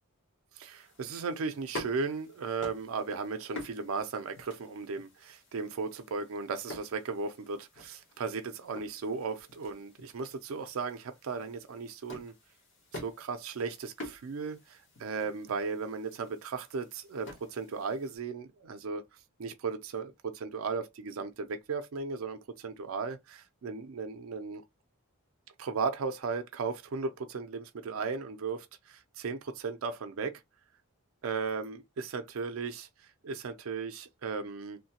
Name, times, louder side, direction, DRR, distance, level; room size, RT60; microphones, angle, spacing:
voice 1, 0.5-12.3 12.9-19.0 19.4-24.6 25.6-30.4 31.2-34.8, right 4 dB, 70° right, 0.4 m, -36 dB
sound 1, 0.6-18.2, left 1 dB, 55° left, 1.1 m, -49 dB
3.1 x 2.1 x 2.8 m
head